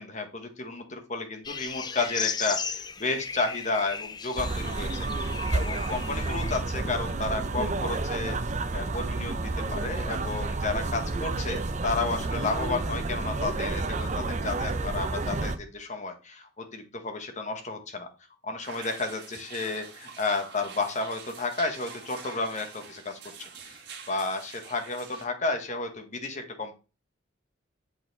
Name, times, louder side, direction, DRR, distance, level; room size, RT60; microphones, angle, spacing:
voice 1, 0.0-8.4 8.7-18.1 18.4-23.2 23.7-23.8 24.1-26.7, left 3 dB, 40° left, 6 dB, 1.2 m, -32 dB
sound 1, 1.4-6.6, left 6 dB, 20° left, 0.4 m, -36 dB
sound 2, 4.4-15.6, right 3 dB, 35° right, 0.6 m, -30 dB
sound 3, 18.6-25.2, right 6 dB, 55° right, 1.7 m, -46 dB
8.1 x 4.2 x 4.0 m, 0.32 s
head